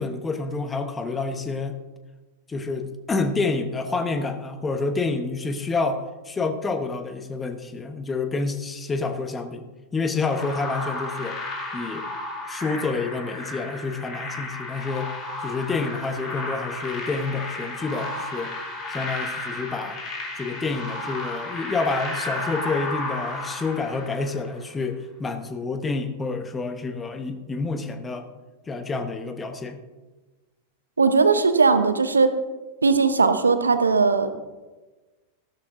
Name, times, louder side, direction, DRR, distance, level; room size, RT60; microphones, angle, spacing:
voice 1, 0.0-1.8 2.5-9.7 9.9-11.4 11.7-12.0 12.5-15.1 15.4-18.5 18.9-20.0 20.3-28.3 28.7-29.8, left 3 dB, 15° left, 7 dB, 1.1 m, -28 dB
sound 1, 10.2-24.6, left 2 dB, 30° left, 3.4 m, -33 dB
voice 2, 31.0-32.3 32.8-34.3, right 4 dB, 75° right, 10 dB, 0.8 m, -19 dB
15.0 x 12.5 x 2.7 m, 1.2 s
figure-of-eight pair, 90°, 0 cm